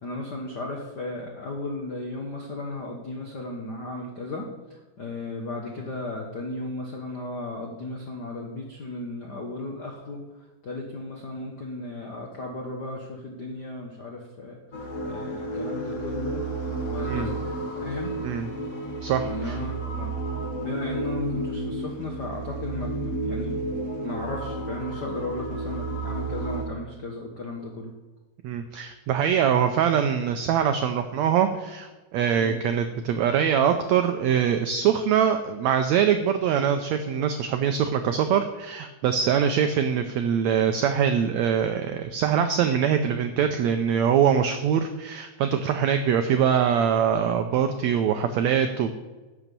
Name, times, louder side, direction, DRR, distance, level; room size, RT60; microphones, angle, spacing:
voice 1, 0.0-10.2 10.6-14.6 15.0-16.4 16.9-17.4 17.8-18.1 19.2-20.1 20.6-23.7 24.0-27.9 32.4-32.6, left 2 dB, 80° left, 0 dB, 0.9 m, -35 dB
sound 1, 14.7-26.7, right 2 dB, 50° left, 0.9 m, -32 dB
voice 2, 19.0-19.6 28.4-48.9, right 8 dB, 85° right, 7 dB, 1.5 m, -23 dB
11.5 x 6.0 x 6.8 m, 1.2 s
omnidirectional pair, 3.9 m